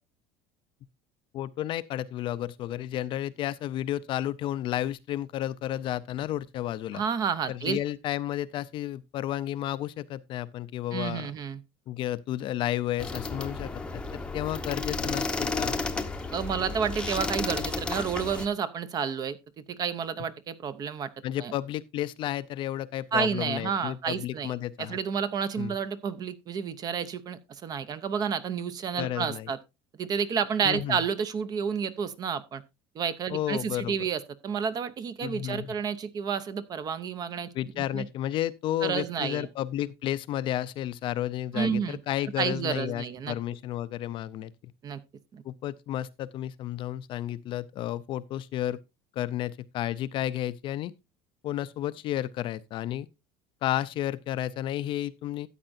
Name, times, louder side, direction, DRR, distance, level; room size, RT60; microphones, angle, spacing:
voice 1, 1.3-7.0 7.5-11.3 11.9-15.8 21.2-25.0 25.6-25.7 29.0-29.5 30.6-31.0 33.3-34.1 35.2-35.7 37.5-44.7 45.4-48.8 49.1-50.9 51.4-53.1 53.6-55.5, left 12 dB, 40° left, 0.5 m, -32 dB
voice 2, 6.9-7.8 10.9-11.6 16.3-21.1 21.4-21.5 23.1-24.5 24.8-29.6 30.0-32.6 32.9-37.5 37.8-38.1 38.8-39.5 41.5-42.0 42.4-43.4 44.8-45.0 45.3-45.4, right 7 dB, 30° right, 0.7 m, -30 dB
sound 1, 13.0-18.5, left 3 dB, 10° left, 0.8 m, -32 dB
13.5 x 8.8 x 2.6 m
cardioid pair, 160°, 13 cm